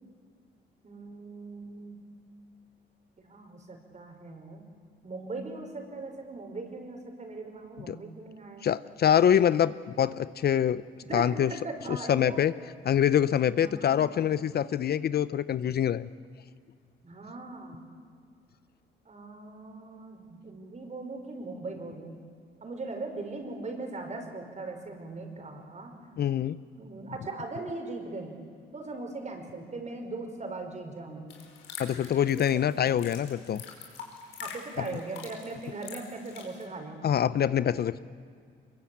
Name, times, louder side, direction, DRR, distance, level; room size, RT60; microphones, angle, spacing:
voice 1, 0.8-2.0 3.2-4.6 5.0-8.7 11.1-12.4 13.6-14.3 17.0-17.8 19.0-22.1 22.6-25.9 26.7-28.3 28.7-31.3 32.4-32.7 34.4-37.1, right 3 dB, 35° right, 4 dB, 5.2 m, -39 dB
voice 2, 8.6-10.8 11.1-11.5 11.9-12.5 12.8-16.1 26.2-26.6 31.8-33.6 34.8-34.9 37.0-38.0, left 9 dB, 55° left, 16 dB, 0.6 m, -25 dB
sound 1, 31.3-36.6, left 6 dB, 90° left, 4.6 m, -45 dB
24.5 x 22.5 x 8.6 m, 2.1 s
cardioid pair, 90°, 20 cm